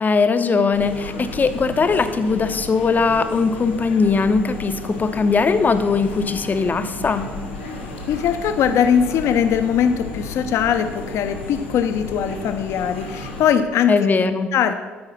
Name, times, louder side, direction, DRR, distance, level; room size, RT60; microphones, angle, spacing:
voice 1, 0.0-7.3 13.9-14.5, left 4 dB, 30° left, 9 dB, 0.8 m, -20 dB
sound 1, 0.7-13.5, left 1 dB, 85° left, 1.1 m, -34 dB
voice 2, 8.1-13.9 14.5-14.7, left 8 dB, 60° left, 8 dB, 0.8 m, -20 dB
13.0 x 4.8 x 5.8 m, 1.3 s
figure-of-eight pair, 50°, 5 cm